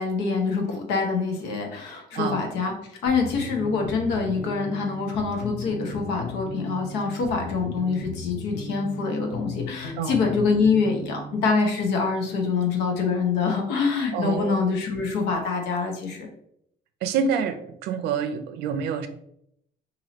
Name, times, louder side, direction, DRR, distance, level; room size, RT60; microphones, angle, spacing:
voice 1, 0.0-16.3, left 4 dB, 90° left, 2 dB, 0.9 m, -25 dB
sound 1, 3.1-11.5, left 2 dB, 45° left, 0.6 m, -36 dB
voice 2, 14.1-14.5 17.0-19.1, right 6 dB, 80° right, 9 dB, 0.5 m, -27 dB
4.1 x 2.7 x 2.9 m, 0.74 s
cardioid pair, 110°, 17 cm